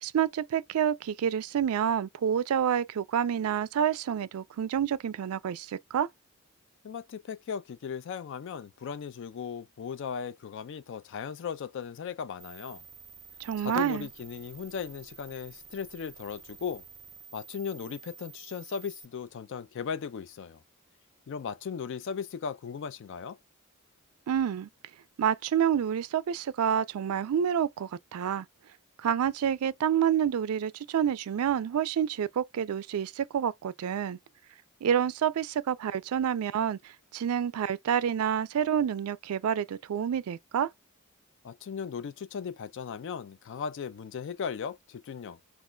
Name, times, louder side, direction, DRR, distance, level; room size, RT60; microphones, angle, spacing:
voice 1, 0.0-6.1 13.4-14.1 24.3-24.7 25.2-28.5 29.0-34.2 34.8-36.8 37.1-40.7, right 8 dB, 85° right, 0.3 m, -28 dB
voice 2, 6.8-12.8 13.6-16.8 17.3-20.6 21.3-23.4 41.4-45.4, left 6 dB, 60° left, 0.3 m, -37 dB
sound 1, 12.4-19.0, right 6 dB, 15° right, 0.7 m, -50 dB
2.4 x 2.2 x 3.7 m
head